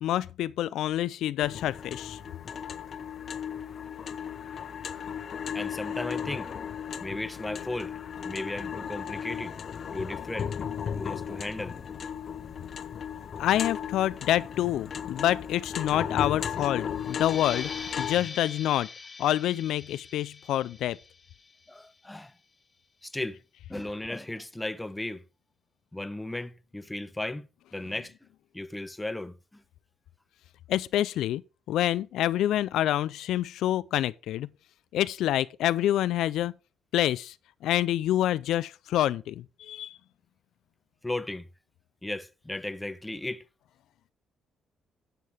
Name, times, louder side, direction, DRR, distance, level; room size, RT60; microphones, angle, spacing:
voice 1, 0.0-2.2 13.4-17.7 18.0-18.9 19.2-21.0 30.7-31.4 31.7-34.5 34.9-36.5 36.9-37.3 37.6-40.0, left 13 dB, 85° left, 0.4 m, -27 dB
sound 1, 1.4-18.1, left 8 dB, 55° left, 0.7 m, -36 dB
voice 2, 5.5-6.5 7.0-7.9 8.2-9.5 9.9-10.5 10.9-11.8 18.0-18.1 21.7-22.3 23.0-23.4 23.7-25.2 25.9-27.5 27.7-28.1 28.5-29.6 41.0-41.5 42.0-43.4, left 2 dB, 10° left, 0.7 m, -35 dB
sound 2, 17.0-22.2, left 4 dB, 35° left, 1.3 m, -43 dB
9.4 x 7.5 x 3.5 m
cardioid pair, 90°, 0 cm